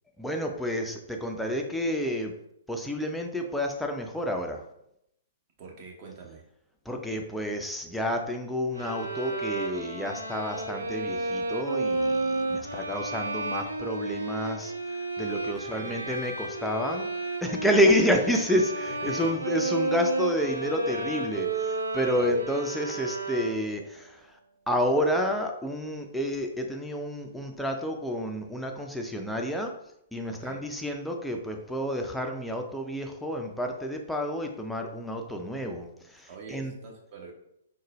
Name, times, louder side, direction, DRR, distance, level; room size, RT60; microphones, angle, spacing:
voice 1, 0.2-2.3 2.7-4.6 6.9-24.4 24.7-29.7 30.1-36.7, equal, ahead, 2 dB, 0.4 m, -29 dB
voice 2, 5.6-6.4 12.6-13.0 15.5-16.2 19.0-19.3 22.1-22.4 30.3-30.6 36.3-37.3, right 4 dB, 40° right, 0 dB, 0.9 m, -44 dB
sound 1, 8.7-23.9, right 2 dB, 80° right, 0.4 m, -32 dB
3.8 x 2.2 x 3.0 m, 0.78 s
figure-of-eight pair, 115°, 0 cm